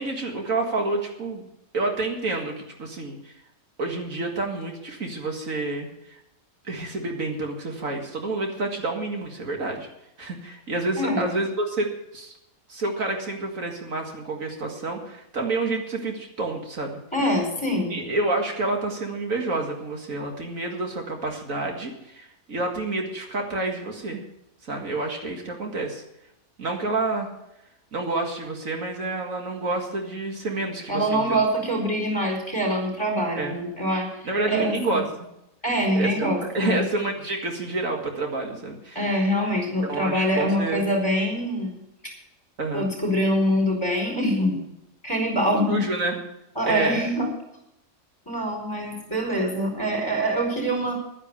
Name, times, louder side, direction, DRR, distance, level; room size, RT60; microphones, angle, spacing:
voice 1, 0.0-1.5 1.7-3.3 3.8-5.9 6.6-9.9 10.2-12.3 12.7-17.0 17.9-24.2 24.6-26.0 26.6-27.3 27.9-31.4 33.4-33.6 34.2-35.0 35.9-39.3 39.8-40.9 42.6-42.9 45.7-46.2 46.6-47.0, right 2 dB, 70° right, 2 dB, 2.4 m, -28 dB
voice 2, 17.1-18.0 30.9-34.1 34.5-35.0 35.6-36.8 38.9-41.8 42.7-44.6 45.0-45.8 46.6-47.3 48.3-50.9, equal, 20° left, 0 dB, 4.6 m, -24 dB
11.5 x 10.0 x 6.9 m, 0.84 s
omnidirectional pair, 1.4 m